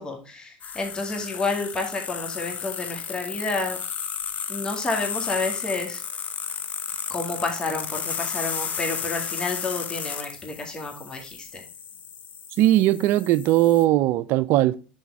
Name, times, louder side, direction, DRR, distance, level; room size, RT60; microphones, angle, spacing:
voice 1, 0.0-3.8 4.5-6.0 7.1-11.6, left 3 dB, 20° left, 2.0 m, -30 dB
sound 1, 0.6-13.8, left 7 dB, 35° left, 0.8 m, -33 dB
voice 2, 12.6-14.9, right 14 dB, 55° right, 0.5 m, -19 dB
6.3 x 4.2 x 4.7 m
hypercardioid pair, 95°, 4 cm